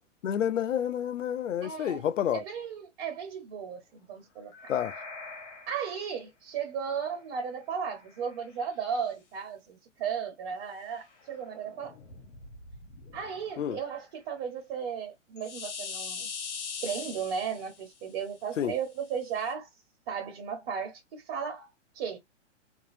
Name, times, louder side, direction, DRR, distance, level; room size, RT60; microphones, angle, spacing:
voice 1, 0.2-2.4 4.7-4.9 13.6-13.8 18.6-18.7, left 9 dB, 80° left, 0.6 m, -29 dB
voice 2, 1.6-2.1 2.3-4.5 5.7-12.0 13.1-16.3 16.8-19.7 20.1-22.2, right 7 dB, 45° right, 1.3 m, -35 dB
sound 1, 4.5-5.9 8.1-8.3 11.2-13.7 15.4-18.0 19.4-19.5, left 5 dB, 65° left, 1.3 m, -42 dB
2.8 x 2.7 x 2.7 m
hypercardioid pair, 120°, 37 cm